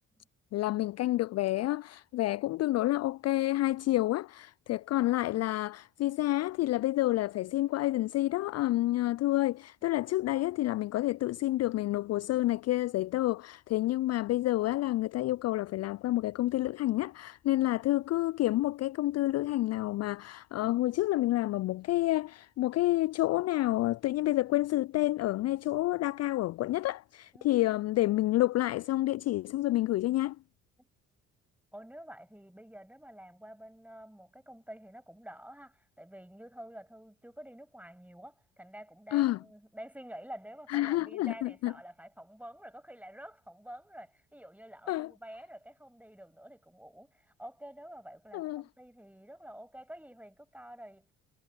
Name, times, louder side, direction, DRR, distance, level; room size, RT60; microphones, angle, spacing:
voice 1, 0.5-30.4 39.1-39.4 40.7-41.7 44.9-45.1 48.3-48.6, left 16 dB, 45° left, 0.4 m, -29 dB
voice 2, 31.7-51.1, right 1 dB, 5° right, 7.8 m, -49 dB
hypercardioid pair, 50°, 36 cm